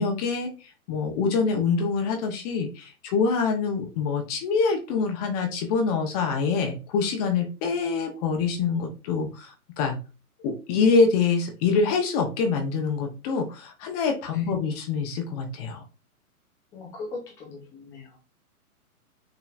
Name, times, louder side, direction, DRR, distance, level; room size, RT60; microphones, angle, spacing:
voice 1, 0.0-10.0 10.4-15.8, left 4 dB, 25° left, 3 dB, 0.8 m, -25 dB
voice 2, 16.7-18.2, left 3 dB, 5° left, -2 dB, 0.4 m, -39 dB
6.0 x 3.0 x 2.4 m, 0.32 s
hypercardioid pair, 130°, 45 cm